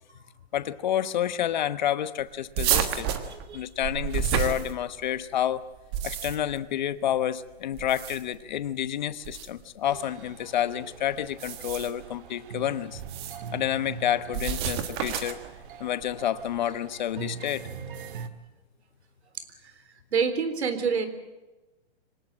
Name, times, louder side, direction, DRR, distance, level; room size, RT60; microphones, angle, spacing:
voice 1, 0.5-3.1 3.5-5.6 6.0-13.0 13.5-15.4 15.8-17.7, left 11 dB, 45° left, 14 dB, 1.1 m, -29 dB
sound 1, 2.6-5.2 5.7-6.6 7.7-8.4 9.2-9.5 11.3-12.0 13.0-13.5 14.3-15.5, right 9 dB, 25° right, 1.4 m, -30 dB
voice 2, 3.3-3.6 19.3-19.7 20.1-21.1, right 6 dB, 90° right, 11 dB, 3.9 m, -28 dB
sound 2, 9.9-18.3, right 6 dB, 55° right, 1.8 m, -42 dB
25.0 x 19.5 x 7.5 m, 1.1 s
hypercardioid pair, 175°, 32 cm